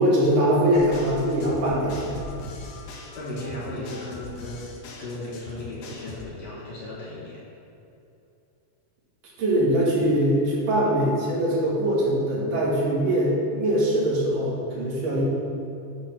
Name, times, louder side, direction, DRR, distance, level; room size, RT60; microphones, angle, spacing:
voice 1, 0.0-2.2 9.4-15.2, right 1 dB, 75° right, -7 dB, 3.3 m, -22 dB
sound 1, 0.7-6.2, left 3 dB, 80° left, 1.3 m, -41 dB
voice 2, 3.1-4.7 5.0-7.4, left 1 dB, 60° left, -7 dB, 2.2 m, -35 dB
8.0 x 3.6 x 6.0 m, 2.8 s
omnidirectional pair, 3.8 m